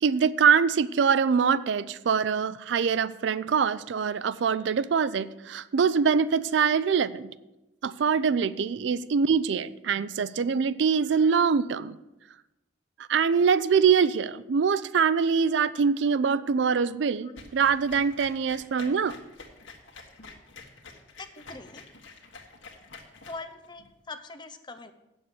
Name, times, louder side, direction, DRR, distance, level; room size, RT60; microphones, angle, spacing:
voice 1, 0.0-7.3 7.8-12.0 13.1-19.1, right 6 dB, 70° right, 17 dB, 0.4 m, -24 dB
sound 1, 17.4-23.8, left 4 dB, 90° left, 1.6 m, -47 dB
voice 2, 21.3-21.9 23.3-24.9, left 3 dB, 25° left, 9 dB, 0.7 m, -42 dB
8.2 x 7.1 x 7.5 m, 0.97 s
head